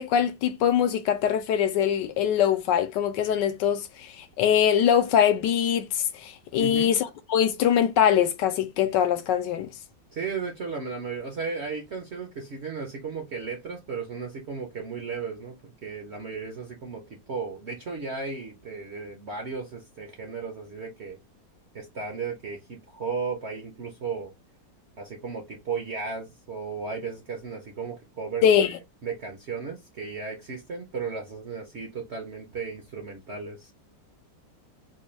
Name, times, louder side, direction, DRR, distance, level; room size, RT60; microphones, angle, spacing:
voice 1, 0.0-9.7 28.4-28.8, left 9 dB, 75° left, 1.2 m, -23 dB
voice 2, 6.6-6.9 10.1-21.2 21.7-24.3 25.0-28.7 29.0-33.7, right 5 dB, 55° right, 0.8 m, -35 dB
4.1 x 2.3 x 3.1 m
omnidirectional pair, 2.0 m